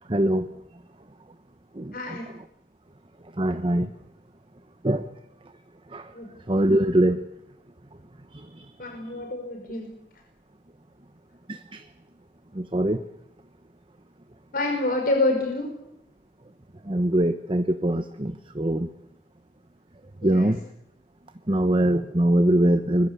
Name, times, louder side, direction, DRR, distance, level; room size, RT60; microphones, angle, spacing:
voice 1, 0.1-0.5 1.7-1.9 3.4-3.9 4.8-5.1 5.9-6.1 6.5-7.2 8.3-8.7 11.5-11.8 12.5-13.0 16.8-18.9 20.2-20.6 21.5-23.1, right 1 dB, 30° right, 9 dB, 1.0 m, -23 dB
voice 2, 1.9-2.3 6.1-6.3 8.8-9.9 14.5-15.7 20.2-20.6, left 2 dB, 55° left, 2 dB, 5.4 m, -27 dB
25.0 x 21.5 x 8.3 m, 0.80 s
head